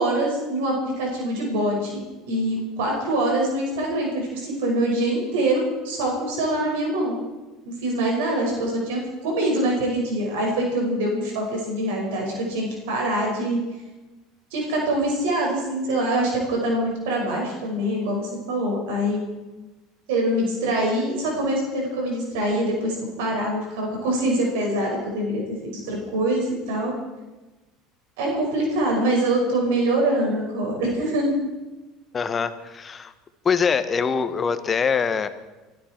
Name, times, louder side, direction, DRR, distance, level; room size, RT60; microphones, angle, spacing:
voice 1, 0.0-1.9 2.3-7.2 7.7-13.6 14.5-19.2 20.1-25.4 25.9-26.9 28.2-31.3, right 1 dB, 85° right, -1 dB, 5.6 m, -24 dB
voice 2, 32.1-33.1 33.4-35.3, left 6 dB, 30° left, 11 dB, 1.2 m, -23 dB
25.0 x 12.5 x 4.5 m, 1.1 s
supercardioid pair, 110°, 0 cm